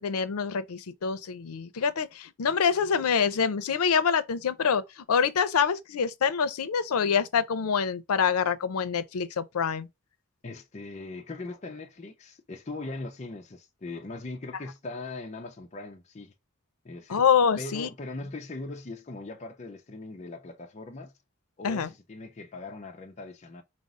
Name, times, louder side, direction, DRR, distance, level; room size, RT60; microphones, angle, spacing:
voice 1, 0.0-9.9 17.1-17.9 21.6-21.9, left 6 dB, 90° left, 0.5 m, -26 dB
voice 2, 10.4-16.3 16.8-17.2 17.6-21.1 21.6-23.6, left 2 dB, 30° left, 0.5 m, -40 dB
5.1 x 2.0 x 3.6 m
head